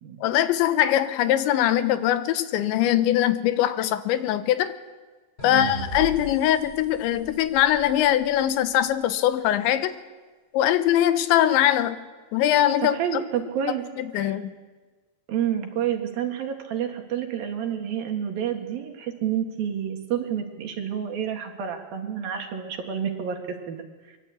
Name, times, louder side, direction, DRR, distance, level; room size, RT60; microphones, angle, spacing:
voice 1, 0.2-4.7 5.4-9.9 10.5-12.0 12.3-13.0 14.0-14.5, left 12 dB, 90° left, 11 dB, 3.4 m, -22 dB
sound 1, 5.4-8.6, right 2 dB, 15° left, 3.8 m, -39 dB
voice 2, 5.4-5.8 12.9-13.8 14.1-14.4 15.3-23.4 23.7-23.8, right 9 dB, 60° right, 4 dB, 3.3 m, -29 dB
23.5 x 22.5 x 8.4 m, 1.4 s
omnidirectional pair, 5.1 m